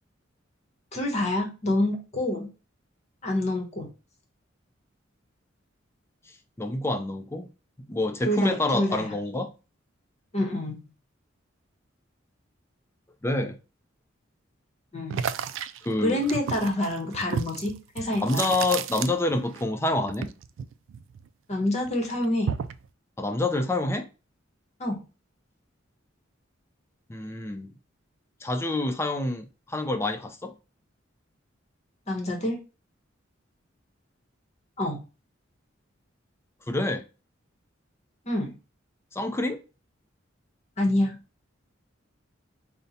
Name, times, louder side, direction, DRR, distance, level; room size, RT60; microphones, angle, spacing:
voice 1, 0.9-2.5 3.2-3.9 8.2-9.1 10.3-10.7 14.9-15.2 16.0-18.5 21.5-22.5 24.8-25.0 32.1-32.6 34.8-35.0 38.3-38.5 40.8-41.2, left 1 dB, 35° left, 0.9 m, -27 dB
voice 2, 6.6-7.5 7.9-9.5 13.2-13.6 15.8-16.2 18.2-20.3 23.2-24.1 27.1-27.7 28.4-30.5 36.7-37.0 39.1-39.6, left 2 dB, 15° left, 0.4 m, -27 dB
sound 1, 15.1-19.6 19.9-21.5 21.9-22.9, right 7 dB, 70° right, 0.3 m, -33 dB
5.2 x 2.1 x 2.7 m
head